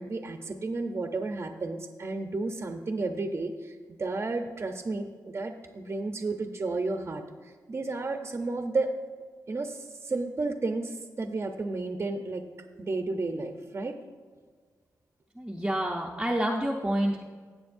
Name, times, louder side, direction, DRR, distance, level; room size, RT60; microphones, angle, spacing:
voice 1, 0.0-9.0 9.5-12.4 12.8-14.0, right 3 dB, 40° right, 5 dB, 0.8 m, -32 dB
voice 2, 15.4-17.3, right 1 dB, 10° right, -1 dB, 0.8 m, -28 dB
17.0 x 7.5 x 2.6 m, 1.6 s
cardioid pair, 75°, 7 cm